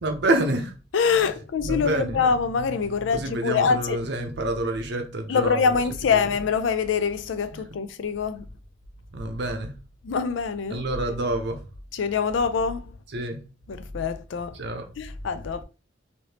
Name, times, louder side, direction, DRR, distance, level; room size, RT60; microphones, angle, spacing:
voice 1, 0.0-0.7 1.6-2.2 3.1-5.8 6.2-6.3 7.5-7.6 9.1-9.7 10.7-11.6 13.1-13.4 14.5-14.9, right 1 dB, 65° right, 0.7 m, -27 dB
voice 2, 0.9-4.0 5.3-8.5 10.0-10.8 11.9-12.9 13.7-14.6 15.0-15.6, left 5 dB, 85° left, 0.4 m, -24 dB
3.3 x 2.7 x 2.8 m
head